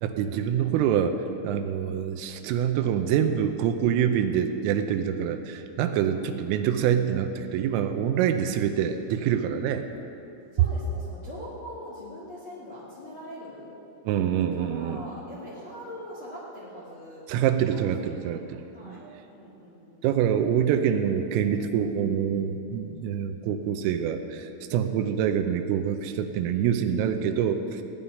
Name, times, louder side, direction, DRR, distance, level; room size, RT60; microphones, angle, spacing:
voice 1, 0.0-9.9 14.1-15.0 17.3-18.6 18.8-19.0 20.0-27.8, right 9 dB, 85° right, 7 dB, 3.3 m, -26 dB
voice 2, 6.1-6.4 7.1-7.3 10.5-13.7 14.5-17.3 17.7-18.4 18.7-20.1 26.9-27.6, equal, 40° left, -7 dB, 2.0 m, -43 dB
16.5 x 5.6 x 10.0 m, 2.9 s
omnidirectional pair, 5.9 m